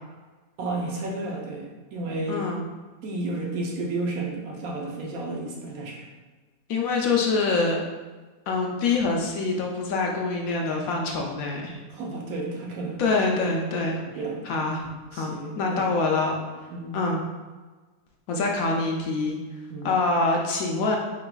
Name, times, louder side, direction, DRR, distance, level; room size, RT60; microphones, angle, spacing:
voice 1, 0.6-2.4 3.0-6.1 11.9-13.0 13.9-14.4 15.1-15.8 16.7-17.0 19.7-20.0, right 2 dB, 70° right, 0 dB, 1.1 m, -32 dB
voice 2, 2.3-2.6 6.7-7.8 8.5-11.8 13.0-14.0 14.4-14.9 15.1-16.3 16.9-17.2 18.3-19.4 19.8-21.0, left 3 dB, 70° left, 0 dB, 0.9 m, -25 dB
4.1 x 3.9 x 2.2 m, 1.3 s
omnidirectional pair, 1.7 m